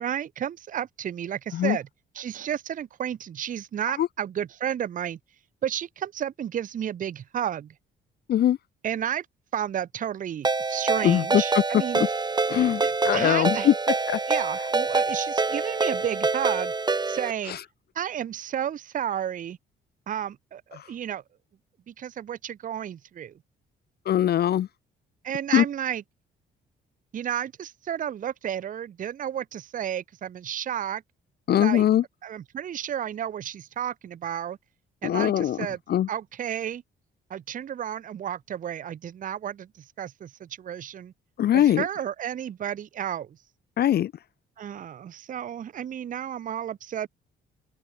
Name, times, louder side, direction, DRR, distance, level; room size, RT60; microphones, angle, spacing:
voice 1, 0.0-1.9 2.1-5.2 5.6-7.7 8.8-9.3 9.5-12.1 12.8-13.7 14.3-16.7 17.1-17.6 17.9-19.6 20.1-21.2 21.9-23.3 25.2-26.0 27.1-31.0 31.5-31.9 32.2-34.6 35.0-35.8 36.1-36.8 37.3-39.7 40.0-41.1 41.5-43.3 44.6-47.1, right 10 dB, 45° right, 0.5 m, -32 dB
Ringtone, 10.4-17.3, right 3 dB, 20° right, 1.4 m, -26 dB
voice 2, 11.0-11.6 11.9-12.1 12.5-13.7 14.1-14.2 17.5-17.6 24.1-24.7 25.5-25.6 31.5-32.0 35.0-35.6 35.9-36.1 41.4-41.9 43.8-44.1, left 11 dB, 55° left, 0.5 m, -21 dB
open air
cardioid pair, 90°, 20 cm